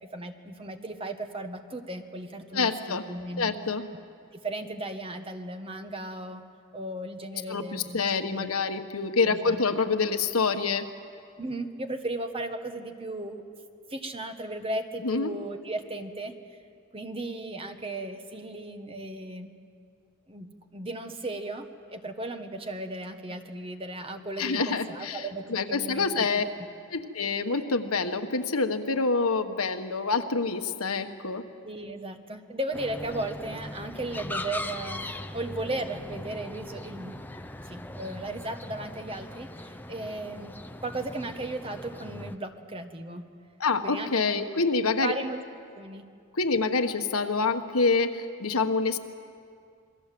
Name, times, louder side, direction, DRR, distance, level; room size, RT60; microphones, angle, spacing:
voice 1, 0.1-3.5 4.3-6.4 6.7-8.5 9.2-9.6 11.4-13.4 13.9-16.3 16.9-19.5 20.3-26.3 31.6-35.1 35.3-37.3 37.7-40.5 40.8-43.3 43.8-44.1 45.0-45.4 45.8-46.0, right 2 dB, 25° right, 6 dB, 1.3 m, -36 dB
voice 2, 2.5-3.1 3.4-3.8 7.5-10.9 15.0-15.3 24.4-25.2 25.5-26.4 26.9-31.4 43.6-45.1 46.4-49.0, left 4 dB, 80° left, 7 dB, 1.3 m, -26 dB
sound 1, 32.7-42.4, left 1 dB, 10° left, 0.6 m, -40 dB
27.5 x 22.0 x 7.7 m, 2.3 s
head